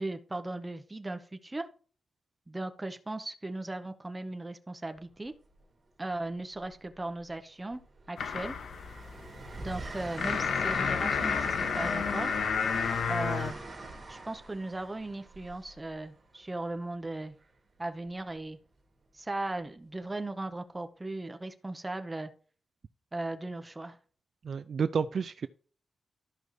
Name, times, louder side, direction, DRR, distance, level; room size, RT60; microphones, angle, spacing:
voice 1, 0.0-1.7 2.5-5.3 6.0-7.8 8.1-8.6 9.6-12.3 13.1-13.6 14.1-17.4 17.8-18.6 19.1-22.3 23.1-24.0, right 2 dB, 15° right, 0.8 m, -37 dB
Train, 5.0-5.3 6.6-7.3 7.7-16.5 18.1-18.3, right 2 dB, 35° right, 2.5 m, -43 dB
sound 1, 8.2-13.5, left 6 dB, 85° left, 0.8 m, -31 dB
voice 2, 24.4-25.5, right 6 dB, 55° right, 0.3 m, -30 dB
13.5 x 5.3 x 3.1 m
wide cardioid pair, 155°, 0 cm